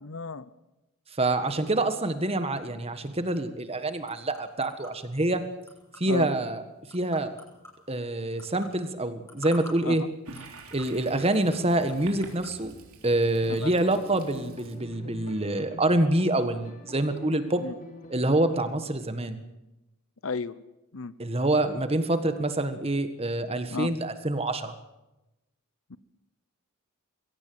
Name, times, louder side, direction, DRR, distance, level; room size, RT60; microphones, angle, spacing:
voice 1, 0.0-0.5 6.1-6.3 9.8-10.0 13.5-13.7 17.6-17.7 20.2-20.6 20.9-21.1 23.7-23.9 25.9-26.0, left 4 dB, 65° left, 17 dB, 0.8 m, -33 dB
voice 2, 1.2-5.4 6.0-6.6 6.9-7.3 7.9-10.0 10.7-12.7 13.0-17.7 18.1-19.4 21.2-24.7, right 1 dB, 25° right, 10 dB, 1.5 m, -26 dB
sound 1, 3.2-12.6, left 1 dB, 15° left, 6.3 m, -51 dB
Toilet flush, 10.3-16.8, right 3 dB, 80° right, 3.6 m, -49 dB
sound 2, 13.2-18.7, left 2 dB, 35° left, 2.5 m, -46 dB
22.5 x 17.0 x 7.9 m, 0.97 s
head